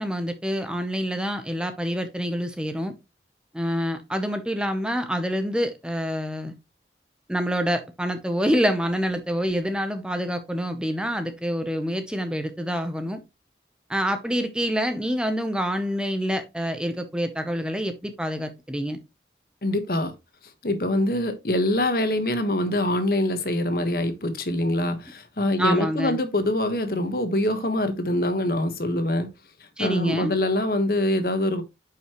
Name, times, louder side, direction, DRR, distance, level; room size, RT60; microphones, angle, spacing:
voice 1, 0.0-2.9 3.5-6.5 7.3-13.2 13.9-19.0 25.6-26.2 29.8-30.4, equal, 5° right, 0.7 m, -27 dB
voice 2, 19.6-20.1 20.6-29.3 29.8-31.6, left 1 dB, 55° left, 1.4 m, -24 dB
9.3 x 5.6 x 3.0 m
head